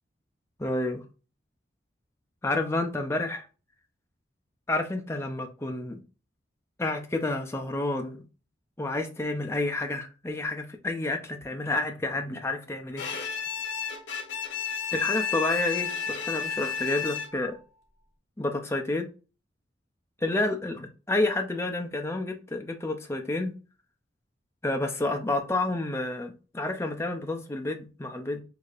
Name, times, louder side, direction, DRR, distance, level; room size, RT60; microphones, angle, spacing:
voice 1, 0.6-1.0 2.4-3.4 4.7-6.0 6.8-8.2 8.8-13.1 14.9-17.6 18.4-19.1 20.2-23.5 24.6-28.4, left 2 dB, 15° left, 0.5 m, -29 dB
Bowed string instrument, 13.0-17.6, left 7 dB, 80° left, 0.9 m, -32 dB
4.7 x 2.7 x 2.4 m
head